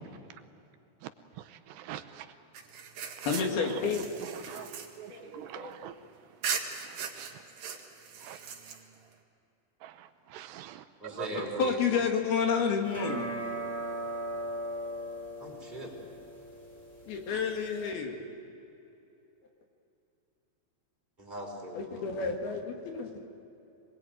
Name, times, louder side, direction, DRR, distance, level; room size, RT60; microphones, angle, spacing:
voice 1, 1.5-2.3 4.5-4.7 5.0-5.9 6.8-7.3 8.2-8.4 9.8-11.6, right 12 dB, 80° right, 9 dB, 2.9 m, -44 dB
sound 1, 2.5-5.9 6.4-9.1, right 6 dB, 60° right, 3.3 m, -39 dB
voice 2, 3.3-4.1 4.5-4.7 5.1-6.0 11.3-13.3 17.1-18.2 21.7-23.3, left 5 dB, 65° left, 3 dB, 3.8 m, -31 dB
voice 3, 11.0-11.8 15.4-15.9 21.2-22.3, equal, 10° right, -1 dB, 4.8 m, -40 dB
sound 2, 12.9-17.9, right 1 dB, 10° left, 5.8 m, -39 dB
25.5 x 21.0 x 9.2 m, 2.8 s
omnidirectional pair, 4.9 m